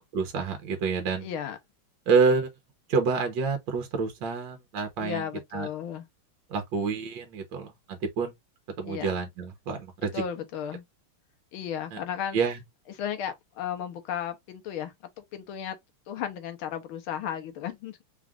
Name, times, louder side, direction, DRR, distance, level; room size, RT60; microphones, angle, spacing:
voice 1, 0.1-1.3 2.1-2.5 2.9-5.2 5.5-5.7 6.5-8.3 8.8-10.2 11.9-12.0 12.3-12.6, right 5 dB, 70° right, 1.7 m, -27 dB
voice 2, 1.2-1.6 5.0-6.1 8.8-9.1 10.1-10.8 11.5-12.4 13.0-14.9 15.3-15.8 16.1-18.0, left 9 dB, 80° left, 1.8 m, -34 dB
4.7 x 2.5 x 3.5 m
omnidirectional pair, 2.2 m